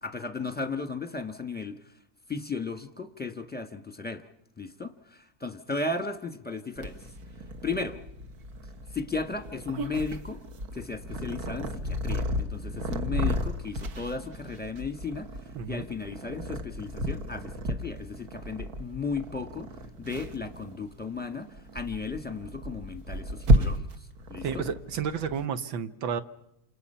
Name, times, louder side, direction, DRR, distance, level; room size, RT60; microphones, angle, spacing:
voice 1, 0.0-1.9 2.3-4.3 4.6-7.1 7.6-8.0 8.9-10.4 10.7-24.6, left 4 dB, 5° left, 7 dB, 1.1 m, -35 dB
Purr, 6.8-25.5, equal, 55° right, 1.8 m, -32 dB
voice 2, 15.6-15.9 24.4-26.2, right 7 dB, 80° right, 11 dB, 1.9 m, -31 dB
29.0 x 27.5 x 5.7 m, 0.80 s
omnidirectional pair, 2.1 m